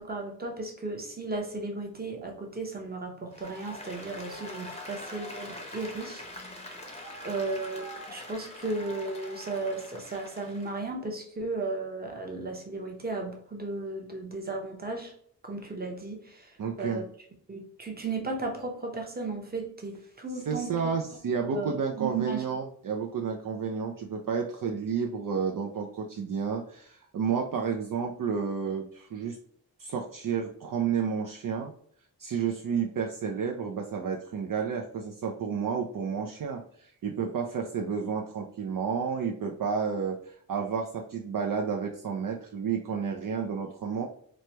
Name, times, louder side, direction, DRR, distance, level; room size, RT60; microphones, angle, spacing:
voice 1, 0.0-6.4 7.2-15.1 15.4-17.1 17.5-20.9 21.5-22.4, right 3 dB, 25° right, 2 dB, 0.8 m, -35 dB
Applause, 3.3-10.8, left 1 dB, 15° left, 0.7 m, -43 dB
voice 2, 16.6-17.0 20.5-29.4 29.8-31.7 32.2-44.1, right 6 dB, 60° right, 1 dB, 0.5 m, -31 dB
3.1 x 2.2 x 2.8 m, 0.62 s
wide cardioid pair, 65°, 38 cm